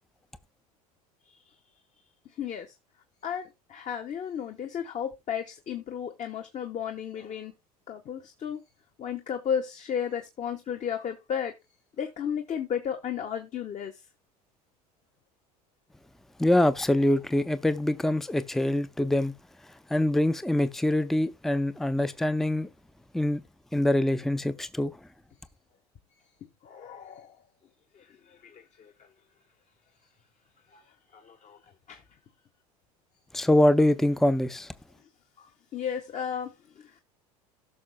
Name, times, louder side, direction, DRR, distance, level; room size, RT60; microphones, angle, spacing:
voice 1, 2.2-2.7 3.2-7.5 7.9-8.6 9.0-11.5 12.0-14.0 26.6-27.4 27.9-29.1 30.7-30.8 31.1-31.6 31.9-32.0 35.4-37.0, left 8 dB, 40° left, 1.3 m, -34 dB
voice 2, 16.4-19.4 19.9-22.7 23.1-23.4 23.7-25.0 33.3-34.7, left 1 dB, ahead, 0.6 m, -24 dB
16.5 x 6.3 x 2.2 m
hypercardioid pair, 75°, 20 cm